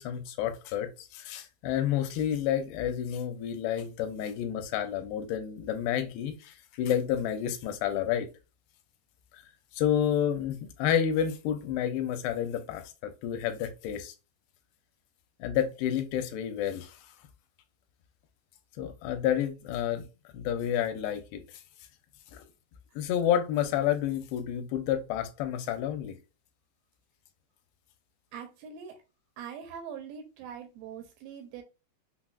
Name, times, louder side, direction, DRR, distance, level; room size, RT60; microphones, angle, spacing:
voice 1, 0.0-8.3 9.3-9.5 9.7-14.1 15.4-17.0 18.8-20.0 20.3-21.4 23.0-26.2, left 9 dB, 85° left, 2.5 m, -30 dB
voice 2, 28.3-29.0 29.4-31.6, right 7 dB, 80° right, 2.2 m, -43 dB
5.8 x 2.0 x 2.3 m
omnidirectional pair, 4.4 m